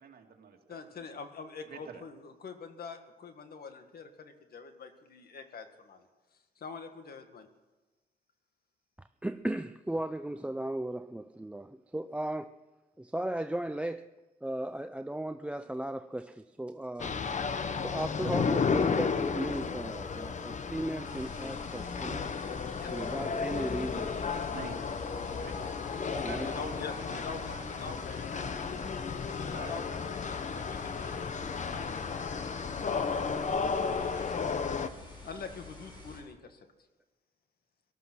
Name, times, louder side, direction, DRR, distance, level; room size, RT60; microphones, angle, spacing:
voice 1, 0.0-1.0 1.7-2.0 24.5-24.8 25.4-25.7 26.1-27.9 29.4-29.8, right 6 dB, 70° right, 2.2 m, -47 dB
voice 2, 0.7-6.1 6.6-7.5 22.8-23.0 25.8-26.2 26.4-28.6 29.4-34.4 35.2-36.7, left 5 dB, 70° left, 1.8 m, -45 dB
voice 3, 9.0-12.5 13.0-14.1 14.4-17.2 17.8-22.2 22.9-24.1 26.2-26.5, right 1 dB, 5° right, 0.4 m, -36 dB
sound 1, 17.0-34.9, left 5 dB, 50° left, 1.0 m, -33 dB
sound 2, 21.0-36.2, left 2 dB, 30° left, 6.6 m, -50 dB
18.0 x 13.0 x 6.2 m
cardioid pair, 100°, 16 cm